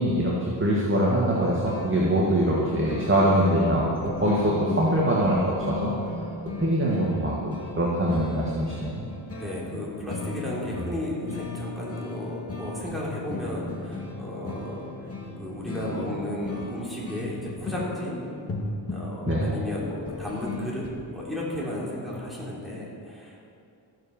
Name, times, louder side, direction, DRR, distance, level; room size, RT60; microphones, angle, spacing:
voice 1, 0.0-5.9 6.6-7.4 7.8-9.0 10.8-10.9 19.3-19.5, right 1 dB, 25° right, -5 dB, 2.1 m, -23 dB
sound 1, 1.3-20.9, left 2 dB, 30° left, 2.1 m, -36 dB
voice 2, 9.4-14.9 15.4-18.2 18.9-23.4, left 1 dB, ahead, -6 dB, 3.9 m, -34 dB
15.0 x 7.7 x 7.3 m, 2.6 s
wide cardioid pair, 115°, 46 cm